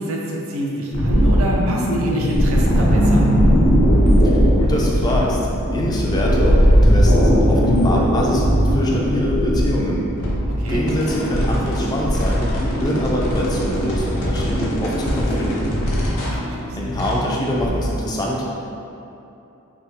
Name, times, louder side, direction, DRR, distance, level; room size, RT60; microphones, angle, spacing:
voice 1, 0.0-3.3 10.6-10.8 16.3-17.0, right 1 dB, 75° right, -2 dB, 0.5 m, -27 dB
sound 1, 0.9-17.9, equal, 80° left, 0.7 m, -18 dB
voice 2, 4.2-5.4 5.7-8.4 8.7-10.1 10.7-12.5 12.8-15.7 16.8-18.4, left 1 dB, 20° left, -3 dB, 0.3 m, -25 dB
3.5 x 2.3 x 2.8 m, 2.8 s
head